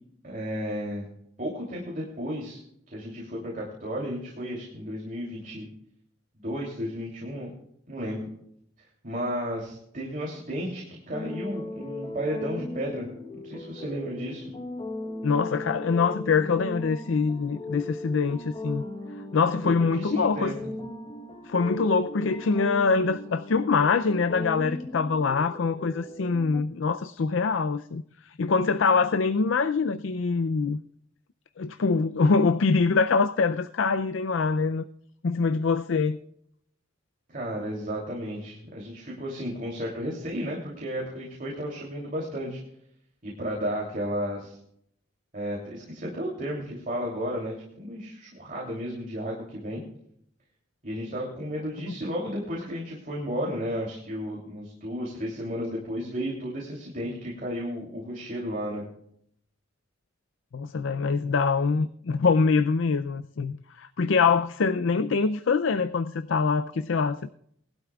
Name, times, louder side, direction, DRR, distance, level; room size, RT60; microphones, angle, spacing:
voice 1, 0.2-1.1 1.4-2.6 2.9-5.7 6.3-7.5 7.9-8.3 8.8-13.1 13.4-14.5 19.6-20.5 37.3-42.6 43.2-44.6 45.3-49.8 50.8-58.9, equal, 45° right, 3.0 m, -33 dB
sound 1, 11.1-26.6, left 1 dB, 25° left, 1.1 m, -38 dB
voice 2, 15.2-18.8 19.3-20.6 21.5-30.8 31.6-34.9 35.2-36.2 51.8-51.9 60.5-67.3, left 4 dB, 75° left, 0.5 m, -24 dB
20.0 x 12.0 x 2.4 m
head